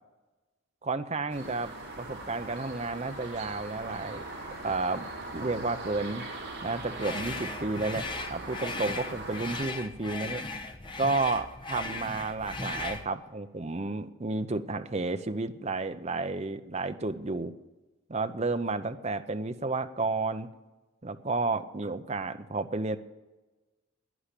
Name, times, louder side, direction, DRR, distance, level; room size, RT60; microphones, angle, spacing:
voice 1, 0.8-4.2 4.6-5.0 5.3-6.2 6.6-10.4 11.0-17.5 18.1-20.5 21.0-23.0, right 3 dB, 30° right, 8 dB, 0.7 m, -31 dB
sound 1, 1.3-9.6, right 2 dB, 50° right, 4.7 m, -40 dB
sound 2, 7.0-13.1, left 3 dB, 20° left, 1.0 m, -37 dB
11.0 x 10.0 x 8.4 m, 1.1 s
head